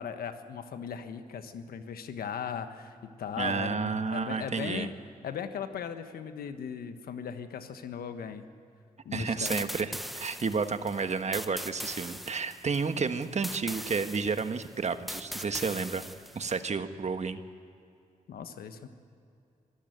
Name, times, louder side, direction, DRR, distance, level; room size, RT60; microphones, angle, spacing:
voice 1, 0.0-4.9 5.2-8.5 9.0-9.6 18.3-18.9, left 7 dB, 85° left, 9 dB, 1.4 m, -38 dB
voice 2, 3.4-4.9 9.1-16.0 16.3-17.4, right 5 dB, 50° right, 9 dB, 1.5 m, -31 dB
sound 1, 9.4-16.6, equal, ahead, 1.2 m, -40 dB
25.5 x 14.5 x 9.3 m, 2.6 s
cardioid pair, 55°, 15 cm